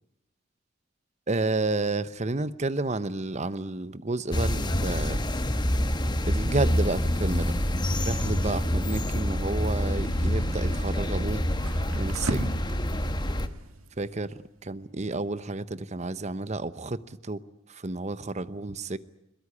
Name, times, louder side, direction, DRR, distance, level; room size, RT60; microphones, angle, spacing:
voice 1, 1.3-5.2 6.2-7.5 8.0-11.4 11.9-12.5 14.0-14.3 14.6-17.4 17.7-19.0, right 2 dB, 35° right, 15 dB, 0.9 m, -30 dB
sound 1, 4.3-13.5, equal, 20° left, 1.2 m, -27 dB
sound 2, 9.7-14.8, right 2 dB, 85° right, 2.2 m, -39 dB
22.0 x 21.5 x 9.8 m, 0.84 s
head